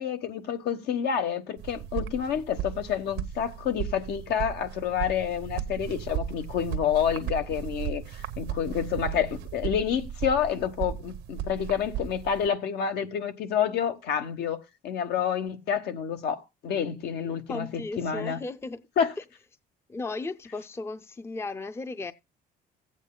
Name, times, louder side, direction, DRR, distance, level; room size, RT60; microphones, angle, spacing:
voice 1, 0.0-14.6 14.8-18.4 19.0-19.1, left 8 dB, 75° left, 1.2 m, -28 dB
sound 1, 1.6-12.5, right 10 dB, 85° right, 0.9 m, -36 dB
voice 2, 17.5-18.8 19.9-22.1, left 3 dB, 15° left, 0.5 m, -35 dB
16.0 x 8.2 x 2.2 m
cardioid pair, 110°, 17 cm